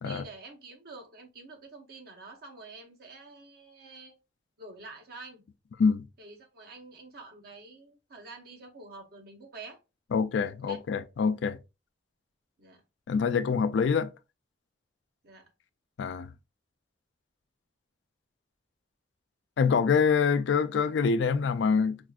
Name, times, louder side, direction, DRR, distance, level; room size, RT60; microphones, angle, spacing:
voice 1, 0.0-4.1 4.6-5.4 6.2-9.8 10.7-10.8 12.6-12.8 15.2-15.5, right 3 dB, 55° right, 0.8 m, -47 dB
voice 2, 10.1-11.6 13.1-14.1 16.0-16.3 19.6-22.0, left 5 dB, 70° left, 0.3 m, -25 dB
4.4 x 2.4 x 2.3 m
head